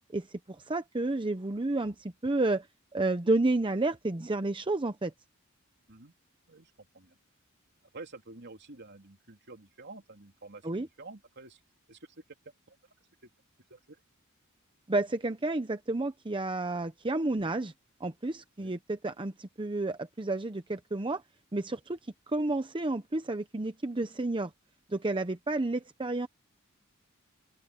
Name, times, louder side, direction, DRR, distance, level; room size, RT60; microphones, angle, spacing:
voice 1, 0.1-2.7 2.9-5.1 10.6-10.9 14.9-17.7 18.0-21.2 21.5-22.0 22.3-24.5 24.9-26.3, right 2 dB, 25° right, 0.8 m, -31 dB
voice 2, 6.5-7.2 7.9-11.6 11.9-12.2 12.7-12.8 13.2-13.3 13.7-14.0 18.6-18.7, right 3 dB, 55° right, 3.3 m, -49 dB
open air
head